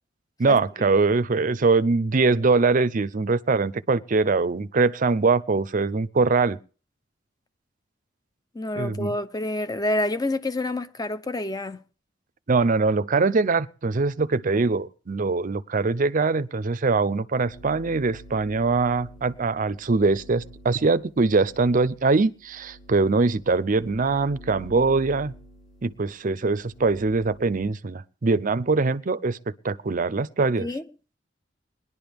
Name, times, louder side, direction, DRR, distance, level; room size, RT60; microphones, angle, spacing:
voice 1, 0.4-6.6 8.8-9.1 12.5-25.3 25.8-29.4 29.6-30.7, right 3 dB, 45° right, 0.6 m, -22 dB
voice 2, 8.5-11.8 30.6-30.8, left 1 dB, 20° left, 0.7 m, -28 dB
sound 1, 17.5-27.7, right 1 dB, 50° left, 6.8 m, -47 dB
20.5 x 11.0 x 3.5 m
head